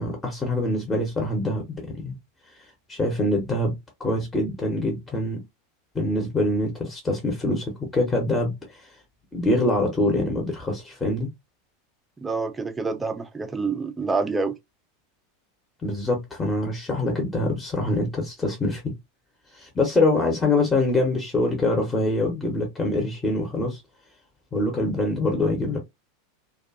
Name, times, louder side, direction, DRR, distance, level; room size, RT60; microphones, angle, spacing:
voice 1, 0.0-2.2 2.9-5.4 5.9-8.9 9.3-11.3 15.8-18.9 19.5-23.8 24.5-25.8, left 2 dB, 15° left, 0.8 m, -24 dB
voice 2, 12.2-14.6, right 4 dB, 15° right, 0.4 m, -27 dB
2.5 x 2.2 x 2.4 m
figure-of-eight pair, 85°, 0 cm